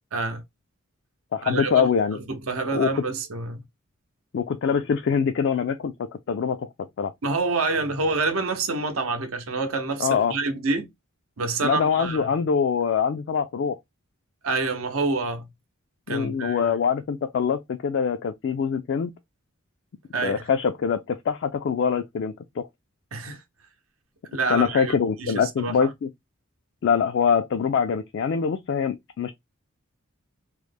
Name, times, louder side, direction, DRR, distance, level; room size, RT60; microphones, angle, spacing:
voice 1, 0.1-0.4 1.4-3.6 7.2-10.9 11.4-12.3 14.4-15.5 16.1-16.8 20.1-20.4 23.1-23.4 24.2-25.9, right 3 dB, 80° right, 0.7 m, -27 dB
voice 2, 1.3-2.2 2.7-2.9 4.3-6.7 7.0-7.1 10.0-10.3 11.6-13.8 16.1-19.1 20.2-22.7 24.5-26.1 26.8-29.3, left 6 dB, 55° left, 0.3 m, -24 dB
3.1 x 2.1 x 3.3 m
head